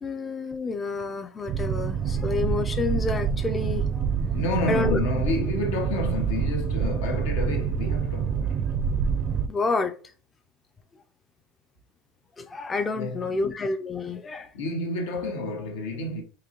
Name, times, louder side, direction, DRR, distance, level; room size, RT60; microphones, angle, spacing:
voice 1, 0.0-4.1 4.7-5.0 9.5-9.9 12.4-14.5, left 3 dB, 20° left, 0.4 m, -29 dB
Boat Water vehicle, 1.5-9.5, right 7 dB, 40° right, 0.4 m, -26 dB
voice 2, 4.3-8.7 12.9-13.5 14.5-16.2, left 2 dB, 85° left, 0.9 m, -30 dB
3.9 x 2.9 x 2.8 m
supercardioid pair, 120°, 0 cm